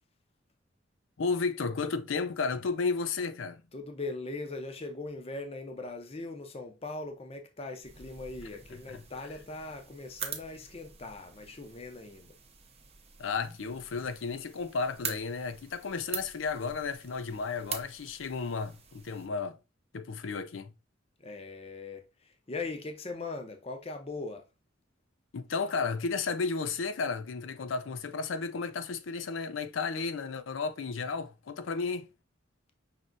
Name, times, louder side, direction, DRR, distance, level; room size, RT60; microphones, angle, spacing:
voice 1, 1.2-3.6 13.2-19.6 19.9-20.7 25.3-32.1, left 4 dB, 85° left, 0.5 m, -33 dB
voice 2, 3.7-12.4 21.2-24.4, left 3 dB, 30° left, 0.6 m, -40 dB
sound 1, 7.8-19.3, right 6 dB, 30° right, 0.7 m, -45 dB
5.7 x 3.2 x 2.6 m
head